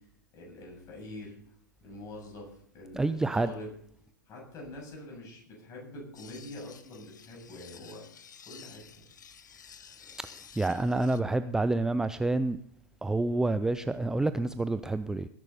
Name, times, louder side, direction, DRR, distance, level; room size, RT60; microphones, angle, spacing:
voice 1, 0.3-1.5 1.8-3.7 4.3-8.0 8.4-9.0, left 1 dB, 30° left, -1 dB, 8.0 m, -45 dB
voice 2, 2.9-3.5 10.2-12.6 13.0-15.3, right 2 dB, 5° right, 12 dB, 0.4 m, -28 dB
sound 1, 6.1-11.2, left 7 dB, 70° left, 1.0 m, -52 dB
20.0 x 11.0 x 4.2 m, 0.64 s
figure-of-eight pair, 100°, 10 cm